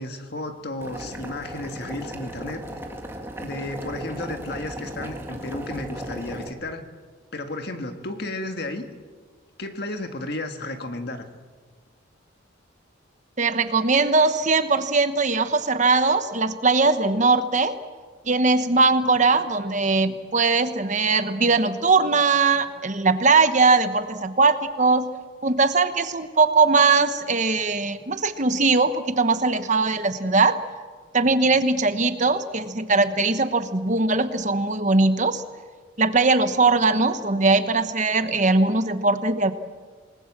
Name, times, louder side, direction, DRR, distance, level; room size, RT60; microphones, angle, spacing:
voice 1, 0.0-2.6 3.4-6.9 7.3-8.9 9.6-11.2, left 2 dB, 50° left, 6 dB, 1.9 m, -33 dB
Boiling, 0.8-6.5, right 1 dB, 10° right, 2.0 m, -36 dB
voice 2, 13.4-17.7 18.3-25.1 25.4-30.6 31.1-35.4 36.0-39.5, right 3 dB, 35° right, 10 dB, 1.0 m, -20 dB
27.5 x 20.0 x 7.4 m, 1.5 s
head